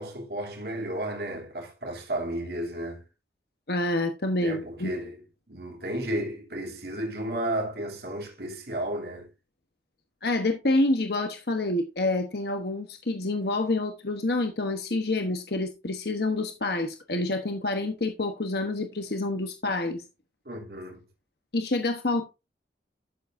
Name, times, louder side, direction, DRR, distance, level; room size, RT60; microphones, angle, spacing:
voice 1, 0.0-3.0 4.4-9.3 20.4-21.0, right 1 dB, 60° right, 3.0 m, -33 dB
voice 2, 3.7-4.9 10.2-20.0 21.5-22.3, left 2 dB, 60° left, 1.1 m, -27 dB
12.0 x 7.3 x 2.6 m
head